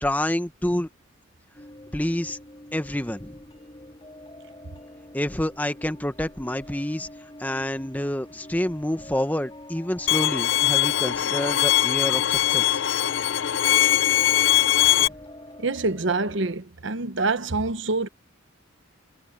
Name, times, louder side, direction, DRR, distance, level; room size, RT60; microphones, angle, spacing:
voice 1, 0.0-0.9 1.9-2.4 2.7-3.3 5.1-7.1 7.4-12.8 15.0-15.1, left 1 dB, 10° left, 1.0 m, -28 dB
sound 1, 1.5-16.6, left 1 dB, 25° left, 2.3 m, -46 dB
Bowed string instrument, 10.1-15.1, left 13 dB, 65° left, 0.6 m, -21 dB
voice 2, 15.6-18.1, right 3 dB, 60° right, 1.0 m, -26 dB
head